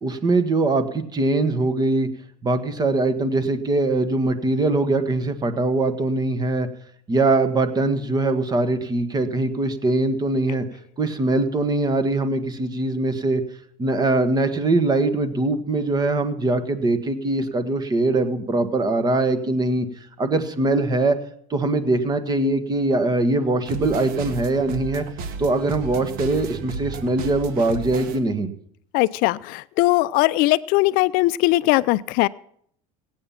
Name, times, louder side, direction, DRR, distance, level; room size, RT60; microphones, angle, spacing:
voice 1, 0.0-2.1 2.4-6.7 7.1-10.6 11.0-13.4 13.8-19.9 20.2-21.2 21.5-25.0 25.4-28.5, right 2 dB, 25° right, 1.5 m, -22 dB
Happy Music, 23.7-28.2, right 5 dB, 60° right, 1.6 m, -33 dB
voice 2, 28.9-32.3, left 19 dB, 65° left, 0.4 m, -20 dB
17.5 x 8.9 x 5.8 m
supercardioid pair, 115°, 16 cm